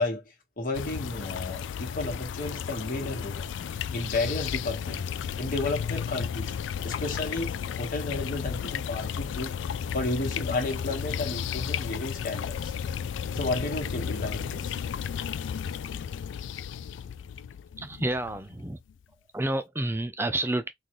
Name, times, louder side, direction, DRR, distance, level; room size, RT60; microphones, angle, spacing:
voice 1, 0.0-3.5 3.9-5.0 5.4-6.5 6.8-12.8 13.3-14.8, left 2 dB, 50° left, 1.4 m, -32 dB
sound 1, 0.7-18.9, left 8 dB, 90° left, 0.3 m, -33 dB
voice 2, 17.8-18.8 19.3-20.7, right 1 dB, 15° right, 0.5 m, -29 dB
3.9 x 2.5 x 3.0 m
head